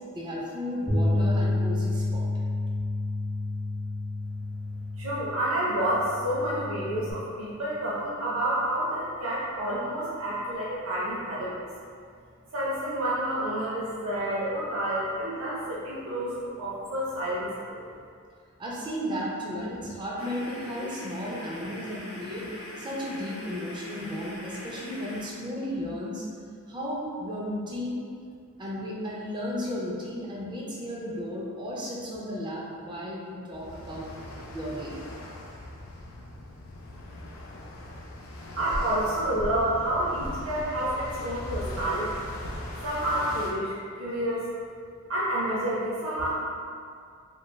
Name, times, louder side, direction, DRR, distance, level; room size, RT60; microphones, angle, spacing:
voice 1, 0.1-2.3 18.6-22.5 22.8-26.3 26.7-28.0 28.6-34.1 34.5-35.0, equal, 20° right, -4 dB, 0.4 m, -34 dB
Bass guitar, 0.9-7.1, left 2 dB, 25° left, 0.9 m, -29 dB
voice 2, 5.0-11.7 12.5-17.8 38.6-42.2 42.8-44.4 45.1-46.3, right 1 dB, 80° right, -7 dB, 0.5 m, -29 dB
sound 1, 20.2-25.2, left 1 dB, 65° left, 0.8 m, -42 dB
sound 2, 33.5-43.5, left 1 dB, 80° left, 0.4 m, -39 dB
3.1 x 2.2 x 2.2 m, 2.2 s
head